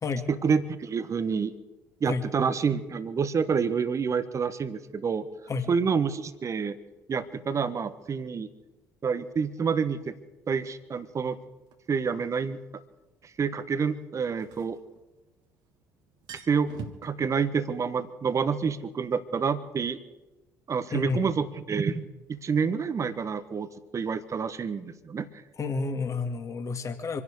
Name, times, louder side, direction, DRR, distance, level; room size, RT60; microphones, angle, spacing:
voice 1, 0.3-1.5 2.0-5.3 5.7-6.8 7.1-8.5 9.0-10.1 10.5-11.4 11.9-12.6 13.4-14.8 16.3-16.7 17.0-20.0 20.7-22.0 22.3-25.3, right 6 dB, 35° right, 13 dB, 1.3 m, -28 dB
sound 1, 11.7-11.8 14.2-15.5 15.8-15.9 16.1-17.1, right 6 dB, 60° right, 1.9 m, -43 dB
voice 2, 25.6-27.2, left 4 dB, 35° left, 6 dB, 2.4 m, -30 dB
26.5 x 11.0 x 5.0 m, 1.1 s
figure-of-eight pair, 50°, 9 cm